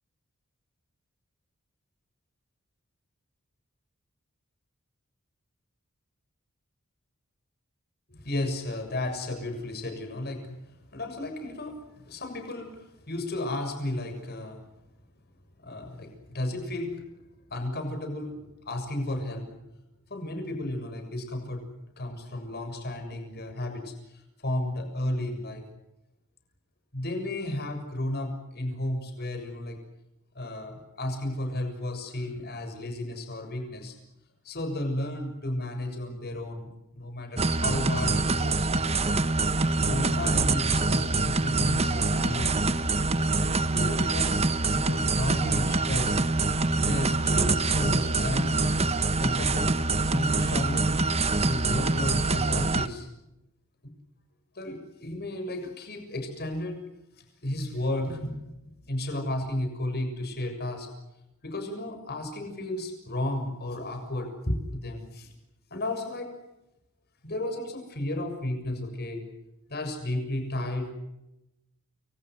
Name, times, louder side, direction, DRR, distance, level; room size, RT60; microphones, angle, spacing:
voice 1, 8.1-10.6 10.9-14.6 15.6-16.9 17.5-19.5 20.1-21.6 22.0-23.9 24.4-25.6 26.9-29.8 30.4-33.9 34.4-38.7 39.9-42.6 43.7-46.2 46.7-48.9 49.2-49.7 50.0-51.0 51.4-53.1 54.6-56.8 57.4-58.5 58.9-60.9 61.4-65.3 65.7-66.3 67.2-69.2 69.7-70.9, left 1 dB, 45° left, 5 dB, 7.0 m, -33 dB
sound 1, 37.4-52.9, right 3 dB, 30° right, 1.3 m, -25 dB
30.0 x 25.5 x 6.3 m, 0.90 s
head